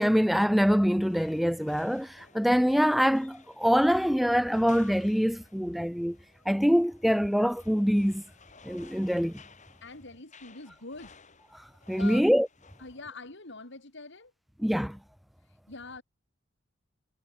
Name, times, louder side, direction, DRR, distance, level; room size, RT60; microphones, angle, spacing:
voice 1, 0.0-6.2 6.5-8.2 8.6-9.4 11.9-12.5 14.6-15.0, equal, ahead, 0.4 m, -24 dB
sound 1, 1.0-13.0, left 5 dB, 35° left, 7.0 m, -57 dB
voice 2, 9.8-11.1 12.0-12.3 12.8-14.3 15.4-16.0, left 3 dB, 60° left, 3.4 m, -44 dB
head